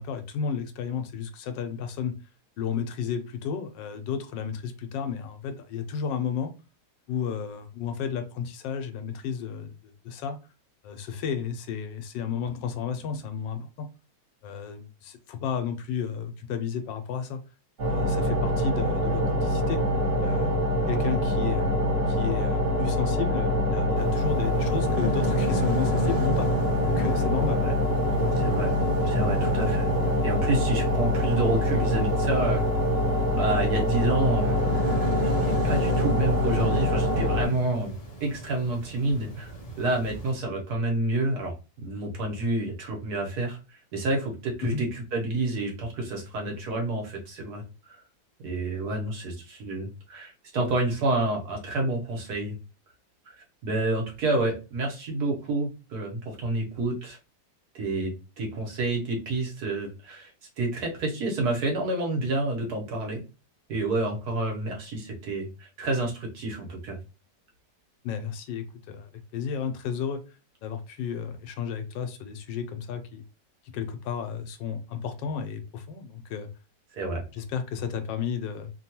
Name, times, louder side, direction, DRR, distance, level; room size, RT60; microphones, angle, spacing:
voice 1, 0.0-2.2 2.6-6.5 7.1-10.4 10.8-13.9 14.4-17.4 17.8-19.8 20.2-21.8 22.1-26.5 26.9-27.7 28.2-28.4 44.6-44.8 68.0-70.2 70.6-73.2 73.7-76.5 77.3-78.7, left 7 dB, 90° left, 8 dB, 1.3 m, -32 dB
sound 1, 17.8-37.5, left 1 dB, 45° right, 1.4 m, -25 dB
sound 2, 24.0-40.3, equal, 60° left, 0.4 m, -34 dB
voice 2, 28.4-28.7 29.0-29.9 30.2-32.6 33.3-34.6 35.4-37.9 38.2-43.6 43.9-48.0 48.4-52.6 53.3-53.4 53.6-57.2 57.7-60.3 60.6-63.2 63.7-67.0 77.0-77.2, right 2 dB, 65° right, 0 dB, 1.4 m, -29 dB
3.2 x 2.2 x 2.8 m, 0.31 s
omnidirectional pair, 1.9 m